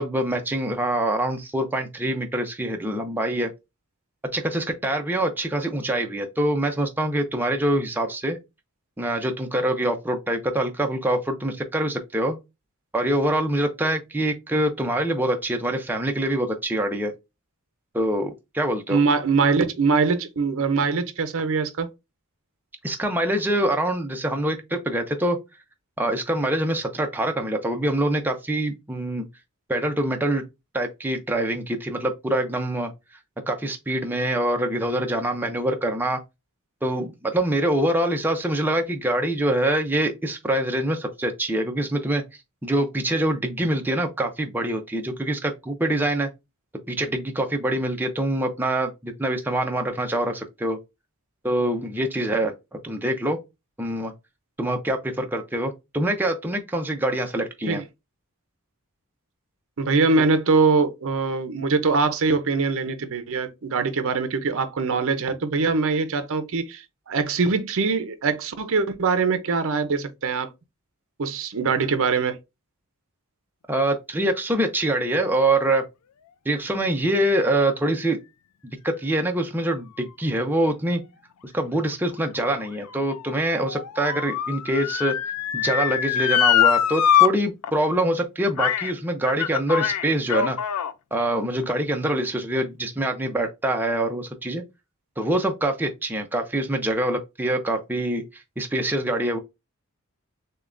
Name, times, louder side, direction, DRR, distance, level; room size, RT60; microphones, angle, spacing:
voice 1, 0.0-3.5 4.3-8.4 9.0-12.4 12.9-17.1 17.9-19.0 22.8-25.4 26.0-29.2 29.7-30.4 30.7-32.9 33.5-36.2 36.8-42.2 42.6-46.3 46.9-50.8 51.4-52.5 52.8-53.4 53.8-54.1 54.6-57.8 73.7-75.8 76.5-78.2 78.8-81.0 81.5-85.1 85.5-90.6 91.1-94.6 95.2-99.4, right 1 dB, 10° right, 0.5 m, -25 dB
voice 2, 18.9-21.9 57.7-57.8 59.8-70.5 71.2-72.4, right 4 dB, 60° right, 0.6 m, -23 dB
Motor vehicle (road) / Siren, 82.1-87.3 87.6-87.7 88.6-88.9 89.2-90.9 91.6-91.7, left 10 dB, 90° left, 0.4 m, -23 dB
6.5 x 2.2 x 2.5 m
head